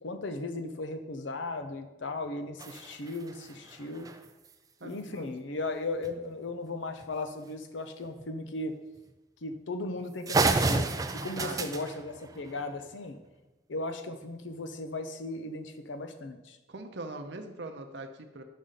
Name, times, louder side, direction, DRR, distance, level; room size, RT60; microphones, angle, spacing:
voice 1, 0.0-4.1 4.8-8.7 9.4-10.9 11.2-13.2 13.7-16.6, left 2 dB, 85° left, 7 dB, 0.7 m, -36 dB
sound 1, 2.6-4.5 6.0-6.1 6.5-6.6 7.0-7.1 8.1-8.2 9.0-9.1 9.5-9.6 10.0-10.1 10.3-12.9, right 3 dB, 20° right, 0.3 m, -31 dB
voice 2, 4.8-5.3 11.4-11.7 16.7-18.4, right 2 dB, 70° right, 5 dB, 0.6 m, -41 dB
5.4 x 5.1 x 5.6 m, 1.0 s
head